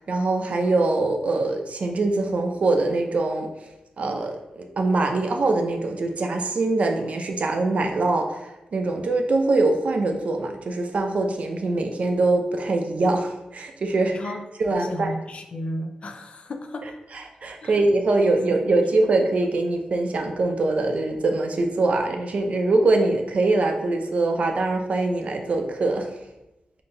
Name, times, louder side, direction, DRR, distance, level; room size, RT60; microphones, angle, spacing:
voice 1, 0.0-3.5 4.0-14.2 14.6-15.1 17.1-26.1, right 2 dB, 55° right, 4 dB, 0.5 m, -23 dB
voice 2, 14.1-17.0 17.6-17.8, left 1 dB, 50° left, 6 dB, 0.4 m, -34 dB
3.8 x 2.8 x 3.8 m, 0.93 s
wide cardioid pair, 135°, 3 cm